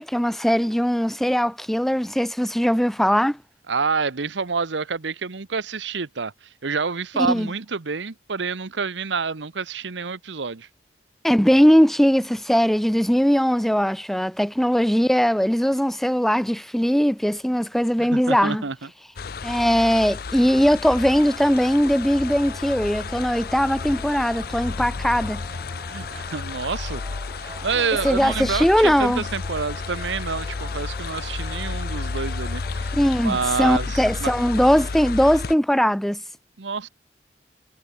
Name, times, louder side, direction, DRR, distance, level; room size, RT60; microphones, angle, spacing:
voice 1, 0.0-3.4 7.3-7.5 11.2-18.6 19.4-25.4 28.0-29.2 32.9-36.2, equal, ahead, 0.5 m, -20 dB
voice 2, 3.7-10.7 18.0-18.9 25.9-27.0 27.4-33.0 33.2-34.3 36.6-36.9, right 5 dB, 85° right, 1.0 m, -28 dB
sound 1, 19.2-35.5, left 4 dB, 55° left, 0.6 m, -32 dB
sound 2, 21.0-33.8, right 2 dB, 15° right, 5.2 m, -45 dB
head